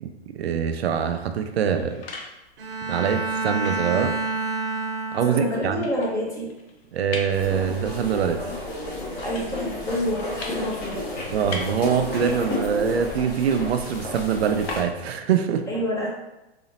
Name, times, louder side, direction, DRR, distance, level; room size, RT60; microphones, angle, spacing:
voice 1, 0.0-2.0 2.8-4.2 5.1-5.9 6.9-8.4 11.3-15.6, right 7 dB, 75° right, 7 dB, 0.5 m, -24 dB
sound 1, 1.4-15.3, left 3 dB, 70° left, 0.8 m, -42 dB
Bowed string instrument, 2.6-5.8, right 3 dB, 60° right, 1.0 m, -28 dB
voice 2, 5.3-6.5 9.2-11.3 12.1-12.4 15.7-16.1, equal, 10° left, -4 dB, 0.7 m, -28 dB
sound 2, 7.3-14.8, left 2 dB, 40° left, 1.5 m, -32 dB
4.1 x 2.7 x 2.8 m, 0.96 s
hypercardioid pair, 125°, 32 cm